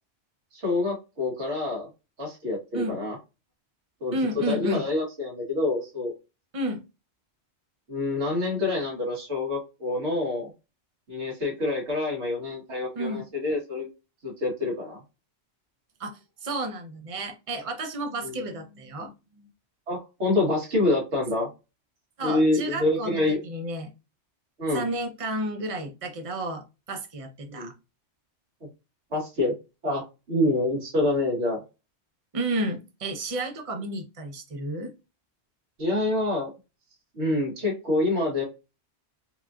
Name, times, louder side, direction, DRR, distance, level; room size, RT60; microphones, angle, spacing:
voice 1, 0.5-1.9 2.2-3.2 4.0-4.2 4.5-6.2 7.9-10.5 11.1-13.9 14.2-15.0 18.2-18.4 19.9-21.5 22.2-23.4 24.6-24.8 27.5-27.7 29.1-29.5 29.8-31.6 35.8-36.5 37.1-38.4, left 2 dB, 80° right, -2 dB, 1.9 m, -26 dB
voice 2, 4.1-4.9 6.5-6.8 13.0-13.2 16.0-19.5 22.2-23.9 24.7-27.7 32.3-34.9, right 1 dB, 35° right, 4 dB, 0.7 m, -32 dB
4.8 x 2.6 x 2.3 m, 0.27 s
omnidirectional pair, 1.1 m